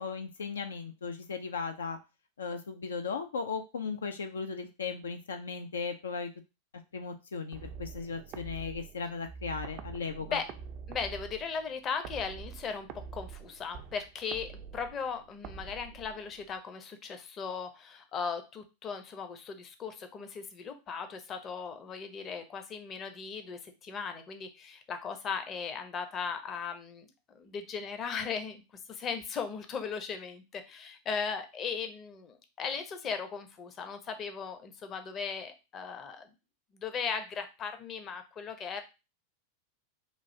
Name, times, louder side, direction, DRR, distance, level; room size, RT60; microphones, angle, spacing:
voice 1, 0.0-2.0 2.4-6.3 6.9-10.4, left 5 dB, 80° left, 6 dB, 0.3 m, -37 dB
sound 1, 7.5-16.6, right 6 dB, 45° right, 0.3 m, -46 dB
voice 2, 10.9-28.6 28.9-36.3 36.7-38.8, left 6 dB, 35° left, 8 dB, 0.6 m, -37 dB
3.1 x 2.4 x 2.7 m, 0.28 s
hypercardioid pair, 95°, 0 cm